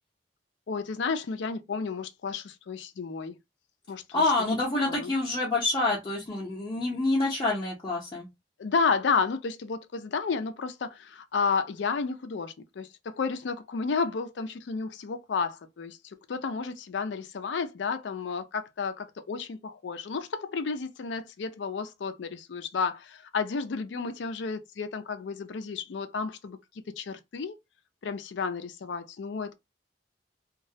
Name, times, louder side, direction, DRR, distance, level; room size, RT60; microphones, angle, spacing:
voice 1, 0.7-3.3 3.9-4.2 4.9-5.1 8.6-16.0 16.3-26.6 26.9-27.5 28.0-29.5, left 5 dB, 75° left, 0.4 m, -31 dB
voice 2, 4.1-8.3, left 2 dB, 25° left, 0.6 m, -27 dB
2.3 x 2.0 x 2.7 m
head